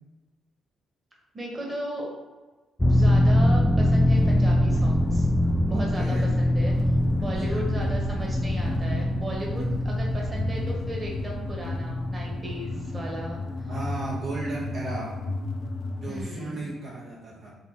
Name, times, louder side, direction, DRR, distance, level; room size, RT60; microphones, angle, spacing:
voice 1, 1.3-2.1 2.9-5.3 5.7-6.7 7.2-13.7 16.1-16.7, right 1 dB, 25° right, -2 dB, 1.3 m, -36 dB
sound 1, 2.8-14.1 14.4-14.5, left 1 dB, 10° left, 0.3 m, -24 dB
sound 2, 4.1-16.2, left 2 dB, 45° left, 0.8 m, -34 dB
voice 2, 5.7-6.3 7.4-7.6 9.5-9.7 13.7-15.1 16.0-17.5, right 2 dB, 55° right, -4 dB, 0.9 m, -34 dB
3.9 x 3.1 x 3.9 m, 1.3 s
cardioid pair, 90°, 0 cm